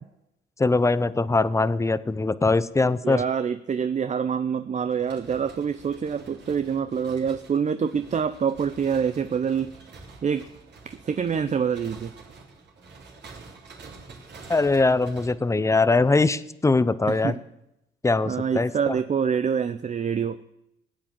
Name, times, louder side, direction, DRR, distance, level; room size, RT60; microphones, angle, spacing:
voice 1, 0.6-3.2 14.5-17.3 18.0-18.9, left 3 dB, 15° left, 16 dB, 0.7 m, -22 dB
voice 2, 3.0-9.7 10.2-10.5 10.8-12.1 17.1-17.4 18.2-20.5, right 7 dB, 35° right, 11 dB, 0.6 m, -26 dB
sound 1, 4.9-15.3, right 3 dB, 60° right, 3.5 m, -47 dB
18.5 x 8.9 x 7.4 m, 0.85 s
cardioid pair, 90°, 20 cm